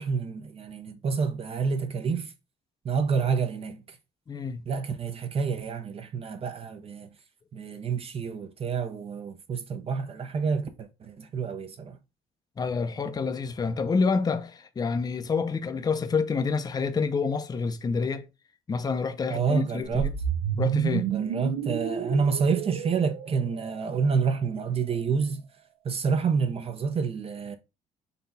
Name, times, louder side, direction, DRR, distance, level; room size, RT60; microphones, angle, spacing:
voice 1, 0.0-2.3 2.8-3.8 4.7-7.1 7.5-12.0 19.3-20.1 21.1-25.4 25.8-27.6, right 5 dB, 35° right, 0.5 m, -28 dB
voice 2, 4.3-4.7 12.6-18.3 18.7-20.1 20.6-21.1, left 5 dB, 25° left, 0.5 m, -28 dB
sound 1, 19.8-24.2, right 9 dB, 80° right, 0.6 m, -30 dB
4.0 x 2.3 x 3.9 m
cardioid pair, 110°, 17 cm